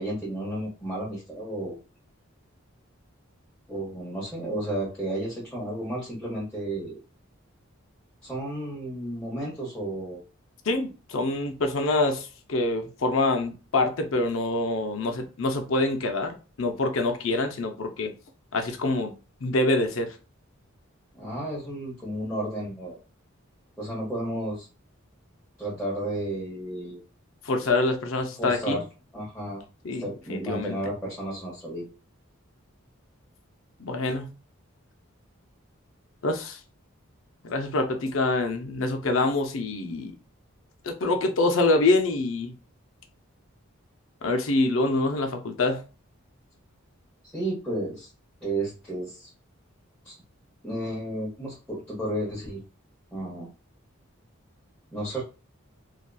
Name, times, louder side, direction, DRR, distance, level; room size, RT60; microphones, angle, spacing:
voice 1, 0.0-1.8 3.7-7.0 8.2-10.2 21.1-23.0 23.8-24.7 25.6-27.0 28.4-28.8 29.1-29.6 29.9-31.9 47.3-48.1 48.4-49.3 50.0-50.2 50.6-52.6 53.1-53.5 54.9-55.2, right 1 dB, 5° left, 0.8 m, -32 dB
voice 2, 10.7-18.1 18.5-19.1 19.4-20.1 27.5-28.8 29.8-30.8 33.8-34.3 36.2-36.6 37.4-40.1 40.8-42.5 44.2-45.8, left 2 dB, 70° left, 0.6 m, -25 dB
2.7 x 2.4 x 2.2 m
head